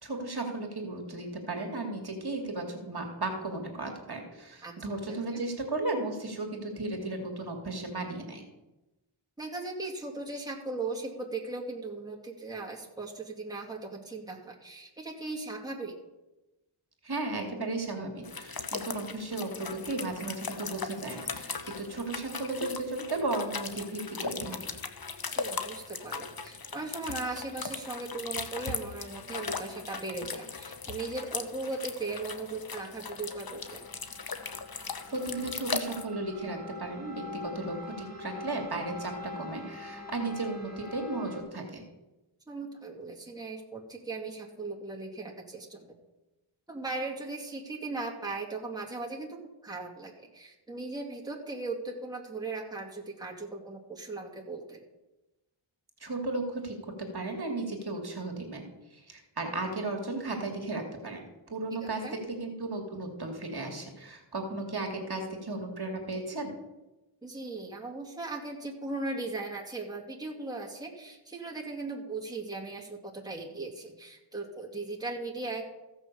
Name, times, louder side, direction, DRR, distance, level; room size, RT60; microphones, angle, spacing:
voice 1, 0.0-8.4 17.0-24.6 35.1-41.8 56.0-66.6, right 2 dB, 50° right, 3 dB, 2.5 m, -35 dB
voice 2, 5.1-5.4 9.4-15.9 25.3-33.8 42.5-45.9 46.7-54.8 61.8-62.2 67.2-75.6, right 3 dB, 10° right, -2 dB, 2.2 m, -38 dB
sound 1, 18.2-36.0, left 5 dB, 45° left, 1.1 m, -38 dB
sound 2, 32.9-41.4, left 3 dB, 15° left, 4.2 m, -45 dB
15.0 x 6.4 x 6.9 m, 1.0 s
wide cardioid pair, 70°, 49 cm